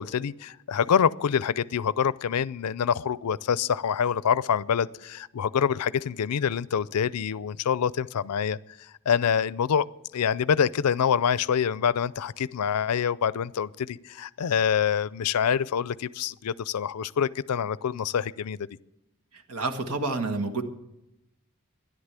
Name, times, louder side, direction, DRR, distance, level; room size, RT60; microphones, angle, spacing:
voice 1, 0.0-9.9 10.1-18.7, left 7 dB, 85° left, 20 dB, 0.4 m, -26 dB
voice 2, 19.3-20.6, right 3 dB, 90° right, 6 dB, 1.6 m, -29 dB
13.0 x 11.0 x 8.1 m, 0.90 s
head